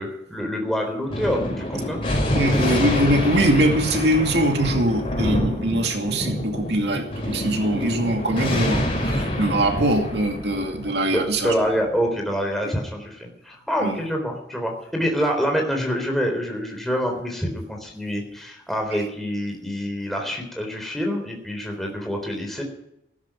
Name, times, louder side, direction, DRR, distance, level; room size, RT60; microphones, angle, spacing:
voice 1, 0.0-2.0 11.1-22.6, equal, ahead, 1 dB, 3.8 m, -26 dB
Thunder, 1.1-11.9, left 1 dB, 30° left, 5.5 m, -26 dB
voice 2, 2.1-11.5 13.8-14.0 18.9-19.1, right 1 dB, 75° right, 3 dB, 2.4 m, -22 dB
15.5 x 12.5 x 6.0 m, 0.81 s
head